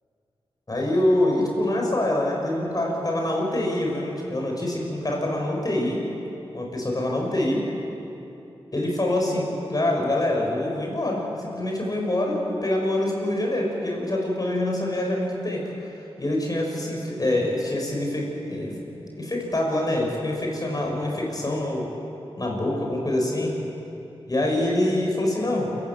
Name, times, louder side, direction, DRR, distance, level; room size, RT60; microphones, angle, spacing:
voice 1, 0.7-6.0 6.5-7.6 8.7-15.7 16.2-18.8 19.2-21.9 22.4-23.5 24.3-25.7, left 1 dB, 40° left, -1 dB, 6.9 m, -25 dB
28.5 x 16.0 x 7.6 m, 2.9 s
cardioid pair, 55°, 10 cm